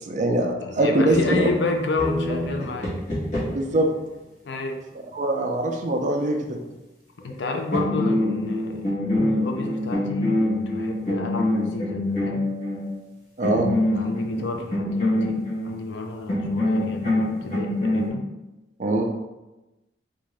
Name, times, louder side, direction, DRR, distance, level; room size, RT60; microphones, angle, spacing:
voice 1, 0.1-1.5 3.5-3.9 5.1-6.6 13.4-13.7 18.8-19.0, right 1 dB, 45° right, 3 dB, 0.4 m, -22 dB
voice 2, 0.6-2.9 4.4-4.8 7.2-12.4 13.4-18.3, left 3 dB, 70° left, 3 dB, 0.5 m, -30 dB
sound 1, 1.1-3.8 7.3-7.4 7.7-12.8 13.4-15.7 16.3-18.1, left 1 dB, 45° left, 1.4 m, -25 dB
3.6 x 2.5 x 3.2 m, 1.0 s
head